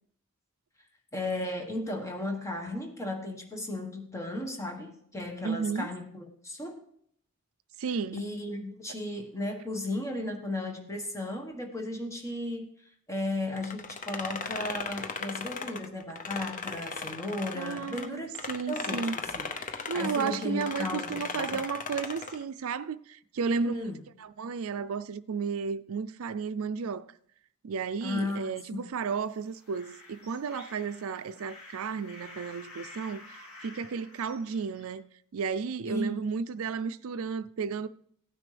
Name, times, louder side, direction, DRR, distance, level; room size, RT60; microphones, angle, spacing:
voice 1, 1.1-6.8 8.1-12.7 13.1-18.3 18.7-21.6 23.5-24.0 28.0-28.8 35.8-36.2, left 1 dB, 15° left, 1.4 m, -35 dB
voice 2, 5.4-5.9 7.8-8.2 17.5-19.2 19.5-23.8 24.2-27.1 27.6-35.1 35.3-37.9, right 5 dB, 70° right, 0.4 m, -33 dB
sound 1, 13.6-18.1 18.3-22.4, left 5 dB, 35° left, 0.7 m, -37 dB
sound 2, 29.0-34.9, left 2 dB, 70° left, 2.4 m, -50 dB
16.5 x 9.5 x 3.4 m
head